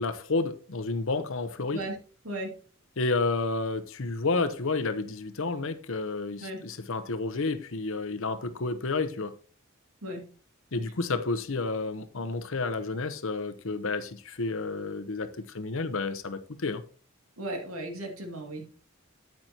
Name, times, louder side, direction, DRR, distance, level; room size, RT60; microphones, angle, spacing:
voice 1, 0.0-1.8 3.0-9.3 10.7-16.8, left 3 dB, 65° left, 0.8 m, -30 dB
voice 2, 17.4-18.8, right 1 dB, 90° right, 2.4 m, -36 dB
9.5 x 8.9 x 2.9 m
head